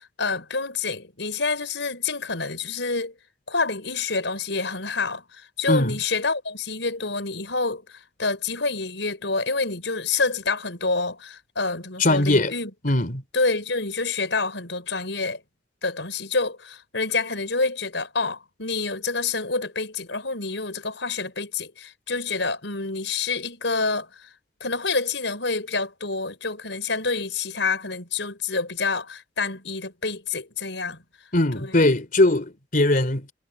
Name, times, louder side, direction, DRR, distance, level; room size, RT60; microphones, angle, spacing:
voice 1, 0.0-3.2 3.5-12.7 13.3-15.4 15.8-24.3 24.6-31.0 31.5-31.9, left 4 dB, 80° left, 5.2 m, -27 dB
voice 2, 5.7-6.0 12.0-12.5 12.8-13.2 31.3-33.3, left 2 dB, 50° left, 3.5 m, -20 dB
head